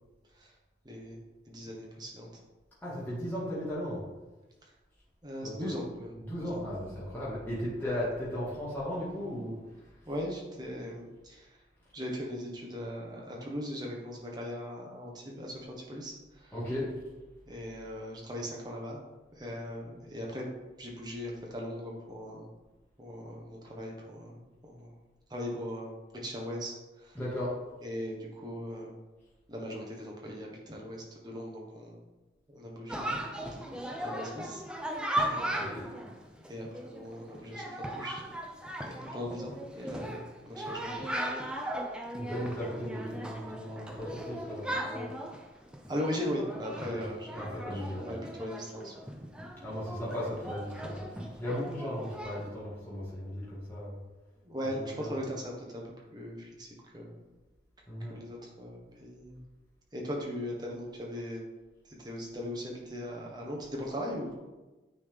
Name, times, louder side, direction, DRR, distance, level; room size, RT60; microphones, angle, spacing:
voice 1, 0.8-1.2 1.5-2.3 5.2-6.6 10.0-11.5 11.9-16.5 17.5-19.0 19.4-20.5 20.8-22.5 23.0-24.4 24.7-24.9 25.3-25.9 26.2-27.2 27.8-28.9 29.5-32.0 32.5-33.2 34.0-34.6 35.2-35.9 36.5-38.2 38.8-41.1 45.9-48.9 54.4-55.8 56.1-56.7 56.9-57.2 58.1-59.4 59.9-61.4 62.0-64.4, equal, 20° right, -2 dB, 1.2 m, -39 dB
voice 2, 2.8-4.0 5.4-5.7 6.2-9.5 16.5-16.9 27.1-27.6 35.6-35.8 42.2-45.1 46.7-47.1 47.3-48.1 49.6-54.0 54.7-55.1 57.9-58.2, equal, 10° left, -10 dB, 1.8 m, -36 dB
Chatter, 32.9-52.5, right 1 dB, 5° right, 0.4 m, -38 dB
9.1 x 4.0 x 3.5 m, 1.1 s
head